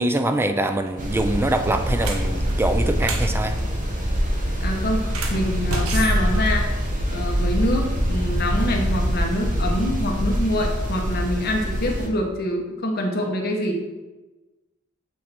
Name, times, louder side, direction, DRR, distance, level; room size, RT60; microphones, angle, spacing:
voice 1, 0.0-3.6, right 1 dB, 10° right, 8 dB, 0.4 m, -23 dB
sound 1, 0.7-1.0 1.5-3.3 5.0-7.1, right 3 dB, 75° right, 0.8 m, -31 dB
sound 2, 1.0-12.1, equal, 40° right, 1.2 m, -24 dB
voice 2, 4.6-5.0 5.3-6.7 7.1-13.8, left 1 dB, 50° left, 1 dB, 1.0 m, -25 dB
8.3 x 3.3 x 4.3 m, 1.1 s
head